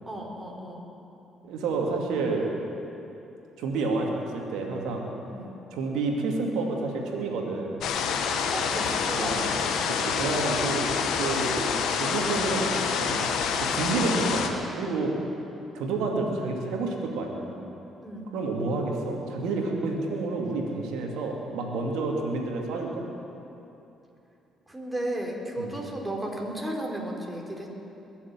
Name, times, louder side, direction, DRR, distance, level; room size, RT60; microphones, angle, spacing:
voice 1, 0.1-0.8 5.3-5.5 8.5-9.8 18.0-18.3 24.7-27.8, right 1 dB, 15° right, -1 dB, 4.0 m, -34 dB
voice 2, 1.5-2.5 3.6-5.1 5.7-7.8 9.2-11.6 11.9-15.1 15.7-17.5 18.3-23.0 25.6-25.7, right 3 dB, 75° right, 1 dB, 2.4 m, -29 dB
sound 1, 7.8-14.5, left 6 dB, 70° left, 1.2 m, -27 dB
21.5 x 7.3 x 9.0 m, 2.9 s
hypercardioid pair, 50°, 0 cm